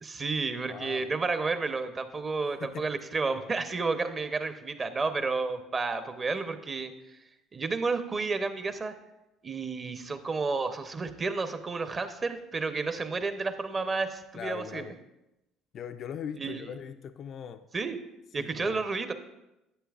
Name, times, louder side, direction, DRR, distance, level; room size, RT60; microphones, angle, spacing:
voice 1, 0.0-6.9 7.5-8.9 9.4-14.9 16.4-16.7 17.7-18.0 18.3-19.1, right 4 dB, 35° right, 9 dB, 0.8 m, -31 dB
voice 2, 0.7-1.1 2.6-2.9 14.3-14.9 15.7-17.6 18.4-18.8, left 7 dB, 55° left, 9 dB, 0.4 m, -40 dB
11.5 x 8.1 x 2.5 m, 0.93 s
hypercardioid pair, 65°, 0 cm